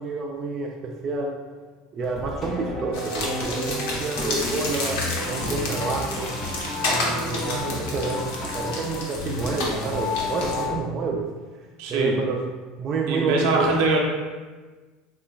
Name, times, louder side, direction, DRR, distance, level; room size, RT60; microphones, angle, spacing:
voice 1, 0.0-1.4 1.9-6.4 6.9-11.3 11.9-12.4 12.8-13.7, right 3 dB, 40° right, 0 dB, 0.3 m, -29 dB
sound 1, 2.0-10.8, left 2 dB, 30° left, 0.9 m, -31 dB
sound 2, 2.9-10.6, left 2 dB, 75° left, 0.7 m, -31 dB
voice 2, 11.8-12.2 13.1-14.0, right 3 dB, 70° right, 0 dB, 0.7 m, -22 dB
3.7 x 3.1 x 2.3 m, 1.3 s
supercardioid pair, 105°, 0 cm